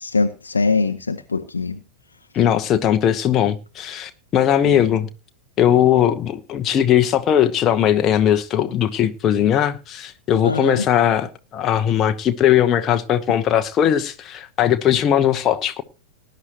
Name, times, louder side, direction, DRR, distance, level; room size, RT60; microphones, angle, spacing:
voice 1, 0.0-1.8 4.6-4.8 10.4-10.9, left 4 dB, 75° left, 0.8 m, -22 dB
voice 2, 2.3-5.1 5.6-15.8, left 10 dB, 30° left, 1.0 m, -19 dB
19.0 x 10.5 x 3.0 m
figure-of-eight pair, 90°, 0 cm